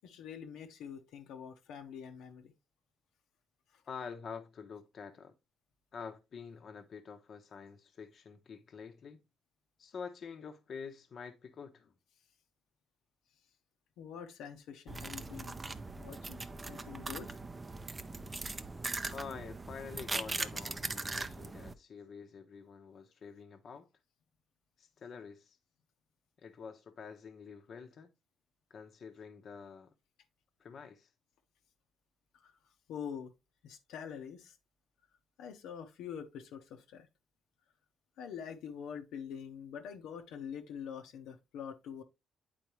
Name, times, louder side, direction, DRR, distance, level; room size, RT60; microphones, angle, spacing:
voice 1, 0.0-2.5 14.0-15.6 15.9-16.4 16.7-17.4 32.3-32.5 32.9-33.3 33.6-34.6 35.4-37.1 38.2-42.0, left 7 dB, 85° left, 0.9 m, -45 dB
voice 2, 3.9-5.3 5.9-9.2 9.8-11.9 19.1-23.9 24.8-25.6 26.4-28.1 28.7-29.9 30.6-31.1, left 6 dB, 55° left, 0.9 m, -47 dB
sound 1, 14.9-21.7, right 3 dB, 25° right, 0.5 m, -40 dB
8.8 x 4.3 x 3.0 m
cardioid pair, 90°, 0 cm